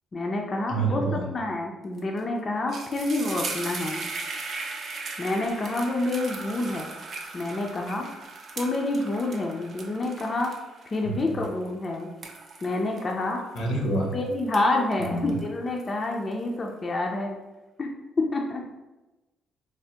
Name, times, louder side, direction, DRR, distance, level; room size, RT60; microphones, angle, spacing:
voice 1, 0.1-4.0 5.2-6.9 7.3-8.1 8.6-10.5 10.9-12.1 12.6-13.4 14.1-17.4 17.8-17.9 18.2-18.6, left 2 dB, 35° left, 1 dB, 0.4 m, -28 dB
voice 2, 0.7-1.3 11.0-11.4 13.5-14.1 15.0-15.4, right 2 dB, 85° left, 0 dB, 0.7 m, -27 dB
sound 1, 2.0-2.2 2.5-14.0 14.4-16.3, right 3 dB, 55° right, 0.4 m, -38 dB
3.3 x 2.0 x 2.8 m, 1.1 s
cardioid pair, 90°, 0 cm